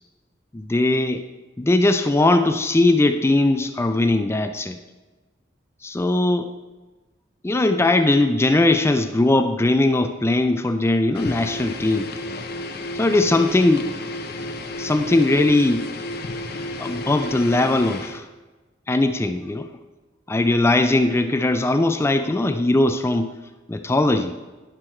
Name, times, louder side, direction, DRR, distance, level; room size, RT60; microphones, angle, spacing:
voice 1, 0.5-1.2 1.6-4.8 5.8-6.5 7.4-12.1 13.0-13.9 14.8-15.9 16.8-18.3 18.9-19.7 20.3-23.3 23.7-24.4, left 2 dB, 15° left, 8 dB, 0.4 m, -19 dB
sound 1, 11.1-18.2, left 1 dB, 55° left, 0.7 m, -32 dB
10.5 x 6.2 x 4.4 m, 1.2 s
head